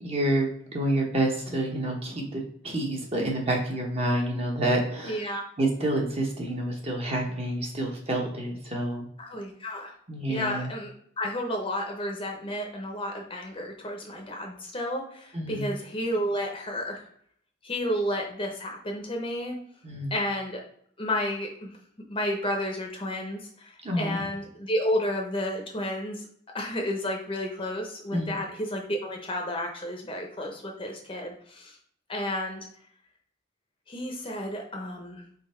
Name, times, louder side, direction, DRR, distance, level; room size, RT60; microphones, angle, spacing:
voice 1, 0.0-5.2 5.6-9.1 10.1-10.7 15.3-15.7 19.8-20.2 23.8-24.2 28.1-28.3, right 1 dB, 30° right, 0 dB, 0.9 m, -28 dB
voice 2, 5.0-5.4 9.2-9.9 10.3-10.9 11.2-17.1 17.6-19.6 20.1-20.6 21.0-21.7 22.1-26.3 26.5-31.8 32.1-32.6 33.9-35.2, left 1 dB, 25° left, 2 dB, 0.7 m, -31 dB
3.9 x 3.2 x 4.2 m, 0.64 s
head